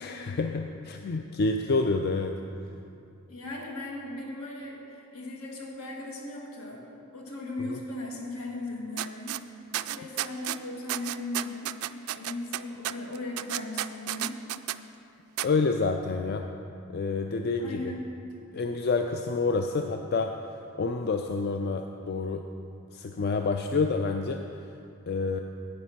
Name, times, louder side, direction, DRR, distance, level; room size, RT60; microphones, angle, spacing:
voice 1, 0.0-2.3 7.6-7.8 15.4-16.4 16.9-17.9 18.5-20.3 20.8-22.4 22.9-24.4 25.1-25.4, left 3 dB, 45° left, 4 dB, 0.4 m, -28 dB
voice 2, 3.3-6.9 7.1-9.4 9.9-11.8 12.1-14.4 17.6-18.0, left 2 dB, 75° left, -1 dB, 1.9 m, -37 dB
sound 1, 9.0-9.4 9.7-10.6 10.9-14.8 15.4-15.5, right 14 dB, 75° right, 0.3 m, -32 dB
9.5 x 8.9 x 5.8 m, 2.6 s
head